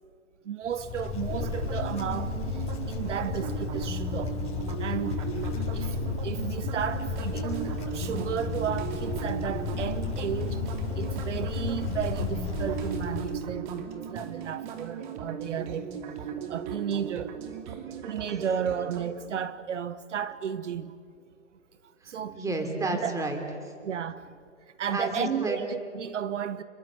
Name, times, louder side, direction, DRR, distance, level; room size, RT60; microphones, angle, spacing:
voice 1, 0.4-4.4 4.8-5.2 5.7-6.0 6.2-10.6 11.0-15.9 16.3-17.4 17.8-21.0 22.0-22.4 23.0-23.1 23.8-24.3 24.8-26.6, right 8 dB, 75° right, 1.2 m, -33 dB
Wind, 0.6-13.5, left 5 dB, 15° left, 7.7 m, -33 dB
sound 1, 1.3-19.1, right 7 dB, 40° right, 2.5 m, -37 dB
voice 2, 22.0-23.7 24.9-25.6, right 2 dB, 10° right, 3.3 m, -31 dB
29.5 x 21.5 x 8.7 m
hypercardioid pair, 140°, 37 cm